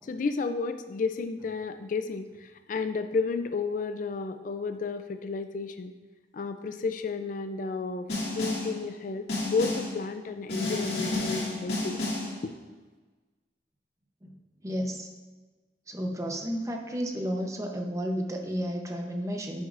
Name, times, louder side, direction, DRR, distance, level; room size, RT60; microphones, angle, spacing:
voice 1, 0.0-5.9 6.3-8.1 8.4-12.0 12.4-12.5, left 4 dB, 45° left, 8 dB, 0.4 m, -32 dB
Snare drum, 8.1-8.8 9.3-10.0 10.5-12.4, left 2 dB, 65° left, 2.3 m, -31 dB
voice 2, 14.6-15.1 15.9-19.6, equal, 15° right, 2 dB, 0.7 m, -32 dB
10.0 x 7.1 x 2.5 m, 1.3 s
head